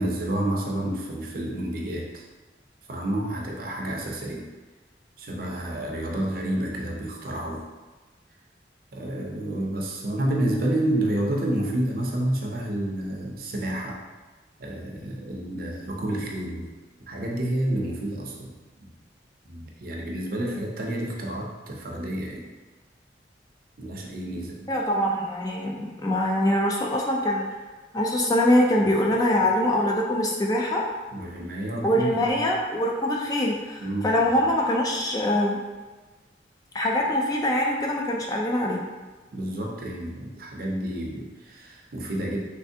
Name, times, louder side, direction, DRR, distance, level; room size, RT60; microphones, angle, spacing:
voice 1, 0.0-2.2 2.9-4.5 5.2-7.6 8.9-14.0 14.6-16.7 17.1-18.5 19.5-22.5 23.8-24.7 28.8-28.9 31.1-32.3 33.8-34.3 39.3-42.4, right 1 dB, 55° right, -1 dB, 0.6 m, -29 dB
voice 2, 24.7-27.5 27.9-30.8 31.8-35.6 36.7-38.8, left 1 dB, 20° left, -1 dB, 0.3 m, -23 dB
3.3 x 3.2 x 2.7 m, 1.2 s
head